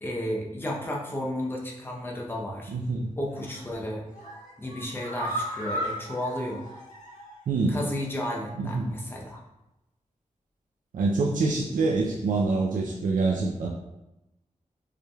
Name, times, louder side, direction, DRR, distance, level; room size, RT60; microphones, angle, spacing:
voice 1, 0.0-2.7 3.2-4.0 4.6-6.6 7.7-9.4, left 1 dB, 15° left, -3 dB, 0.7 m, -33 dB
voice 2, 2.7-3.1 7.5-7.8 8.6-8.9 10.9-13.7, right 3 dB, 90° right, -2 dB, 0.4 m, -25 dB
sound 1, 3.3-3.7 4.1-7.5 7.8-7.9 8.3-8.4, equal, 70° left, 1.4 m, -36 dB
4.8 x 3.2 x 2.3 m, 0.94 s
wide cardioid pair, 125°, 13 cm